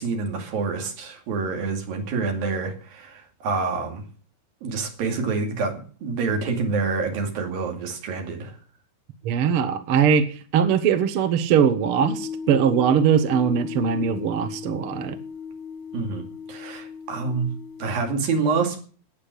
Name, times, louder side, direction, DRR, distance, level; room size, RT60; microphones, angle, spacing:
voice 1, 0.0-4.0 4.6-8.6 15.9-16.2 16.5-17.5 17.8-18.8, right 4 dB, 75° right, 3 dB, 4.4 m, -27 dB
voice 2, 9.2-10.3 10.5-15.2, right 7 dB, 55° right, 10 dB, 1.7 m, -21 dB
sound 1, 12.0-18.0, left 6 dB, 60° left, 1.4 m, -36 dB
18.0 x 7.0 x 8.4 m, 0.42 s
omnidirectional pair, 4.1 m